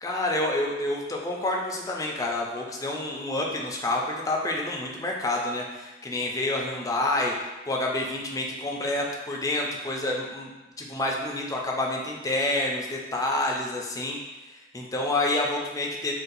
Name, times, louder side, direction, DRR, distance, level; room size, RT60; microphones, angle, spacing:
voice 1, 0.0-10.5 10.8-14.2 14.5-16.1, left 2 dB, 20° left, -1 dB, 0.4 m, -28 dB
2.6 x 2.1 x 3.9 m, 1.1 s
head